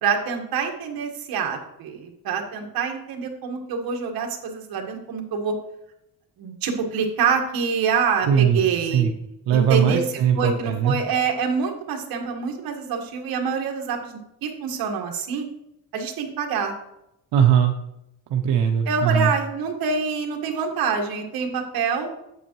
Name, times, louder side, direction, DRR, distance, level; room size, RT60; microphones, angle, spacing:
voice 1, 0.0-5.6 6.4-9.1 9.5-10.0 10.3-15.5 15.9-16.7 18.9-22.1, right 6 dB, 65° right, 3 dB, 1.4 m, -26 dB
voice 2, 8.3-8.6 8.9-9.1 9.5-11.0 17.3-17.7 18.3-19.3, right 8 dB, 85° right, 3 dB, 0.8 m, -19 dB
8.2 x 7.6 x 3.0 m, 0.83 s
cardioid pair, 160°, 39 cm